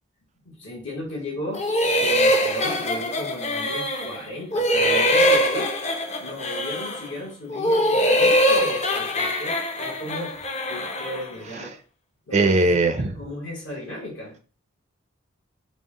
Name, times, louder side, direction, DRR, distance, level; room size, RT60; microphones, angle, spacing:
voice 1, 0.4-1.7 2.0-5.7 6.2-10.3 10.7-11.7 12.3-14.4, left 1 dB, 60° left, -3 dB, 1.0 m, -35 dB
sound 1, 1.5-4.2 4.5-7.1 7.5-11.3, equal, 30° left, 0.5 m, -22 dB
voice 2, 12.3-13.2, right 2 dB, 30° right, 7 dB, 0.4 m, -20 dB
3.9 x 2.0 x 3.6 m, 0.37 s
head